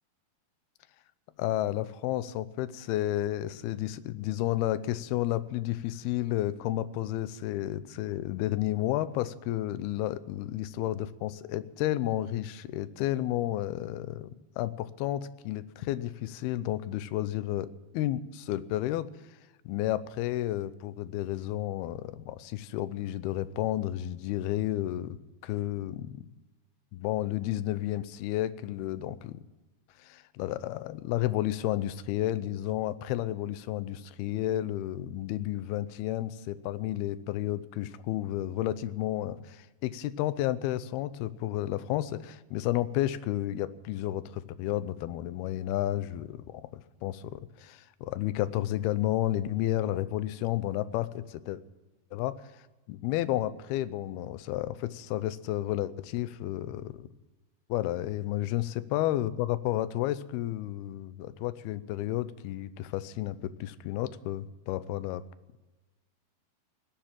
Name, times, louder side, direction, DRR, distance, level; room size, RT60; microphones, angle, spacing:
voice 1, 1.4-14.3 14.6-19.1 19.7-25.2 25.4-26.3 26.9-29.4 30.0-46.7 47.0-51.6 52.1-52.3 52.9-57.1 57.7-65.2, left 14 dB, 85° left, 15 dB, 2.7 m, -31 dB
18.5 x 10.5 x 7.4 m, 1.2 s
omnidirectional pair, 4.4 m